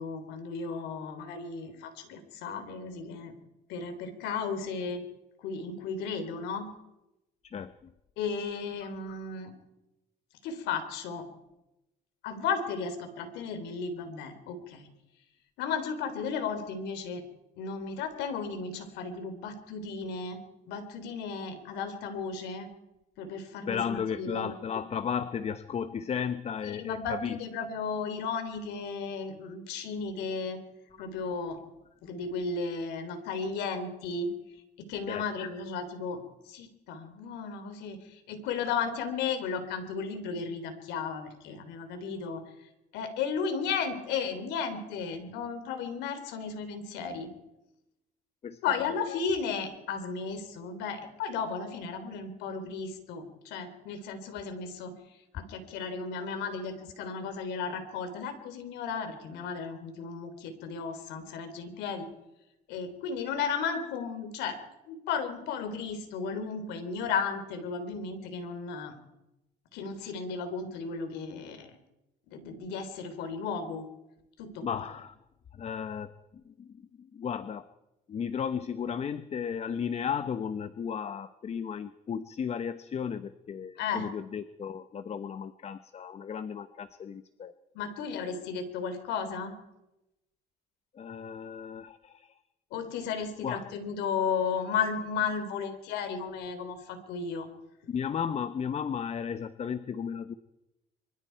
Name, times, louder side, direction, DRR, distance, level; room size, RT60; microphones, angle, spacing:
voice 1, 0.0-3.4 3.7-5.0 5.4-6.7 8.2-9.5 10.4-11.3 12.2-14.9 15.6-17.2 17.6-20.4 20.7-22.7 23.2-24.5 26.6-30.6 31.0-31.6 32.0-34.3 34.8-42.4 42.9-47.3 48.6-54.9 55.3-62.1 62.7-64.6 64.9-69.0 69.7-71.8 72.3-73.9 74.4-74.8 83.8-84.1 87.7-89.6 92.7-97.5, left 5 dB, 90° left, 8 dB, 3.5 m, -34 dB
voice 2, 7.4-7.9 23.7-27.4 35.1-35.3 48.4-49.2 74.6-75.1 75.5-77.7 78.1-87.5 90.9-92.4 93.4-93.6 97.9-100.3, left 7 dB, 40° left, 12 dB, 0.9 m, -34 dB
24.5 x 24.5 x 4.6 m, 0.94 s
cardioid pair, 110°, 17 cm